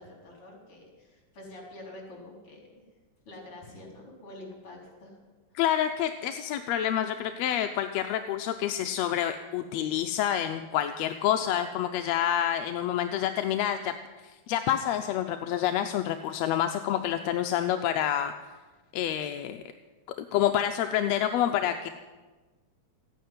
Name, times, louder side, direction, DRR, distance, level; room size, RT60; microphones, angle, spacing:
voice 1, 0.0-2.8 3.2-5.2, left 1 dB, 45° left, -1 dB, 4.8 m, -47 dB
voice 2, 5.6-13.9 14.2-18.3 18.9-19.6 20.2-21.9, left 10 dB, 75° left, 7 dB, 1.7 m, -28 dB
15.0 x 10.0 x 9.5 m, 1.3 s
omnidirectional pair, 3.4 m